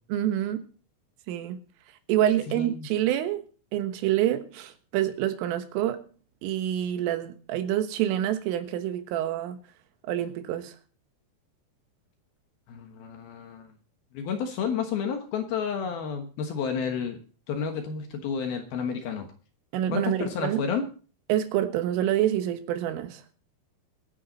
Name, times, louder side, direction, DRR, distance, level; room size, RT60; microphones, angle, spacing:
voice 1, 0.1-0.7 1.3-1.6 2.1-3.4 3.7-6.0 6.4-9.6 10.1-10.8 19.7-20.7 21.3-23.2, right 12 dB, 90° right, 3.9 m, -27 dB
voice 2, 2.5-2.9 12.7-13.7 14.1-17.2 17.5-19.3 19.9-20.8, left 6 dB, 65° left, 2.7 m, -31 dB
23.5 x 9.5 x 4.0 m
omnidirectional pair, 5.6 m